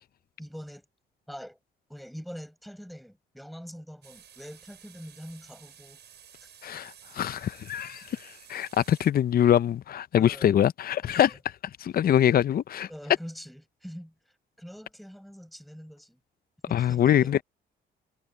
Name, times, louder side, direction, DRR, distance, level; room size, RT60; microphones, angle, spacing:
voice 1, 0.4-0.9 1.3-1.6 1.9-6.0 6.4-6.5 10.1-10.6 11.0-11.4 12.9-14.1 14.6-16.2 16.7-17.4, equal, ahead, 5.4 m, -44 dB
sound 1, 4.0-9.1, right 9 dB, 60° right, 7.0 m, -53 dB
voice 2, 6.6-11.3 11.8-12.9 16.7-17.4, left 10 dB, 50° left, 0.6 m, -24 dB
cardioid pair, 90°, 20 cm